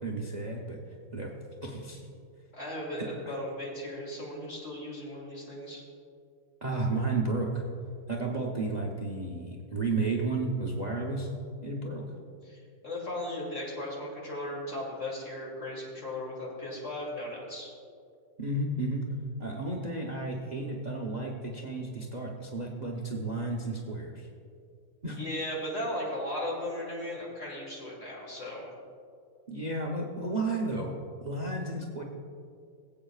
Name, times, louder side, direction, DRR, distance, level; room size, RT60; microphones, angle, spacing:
voice 1, 0.0-0.8 1.1-1.3 1.6-2.0 3.3-3.4 6.6-7.6 8.1-11.3 11.6-12.0 18.4-19.1 19.4-24.3 25.0-25.2 29.5-32.0, right 2 dB, 75° right, 0 dB, 0.4 m, -32 dB
voice 2, 2.5-5.8 12.4-17.7 25.1-28.7, left 1 dB, 35° left, -4 dB, 3.0 m, -37 dB
21.0 x 8.0 x 2.4 m, 2.3 s
omnidirectional pair, 2.1 m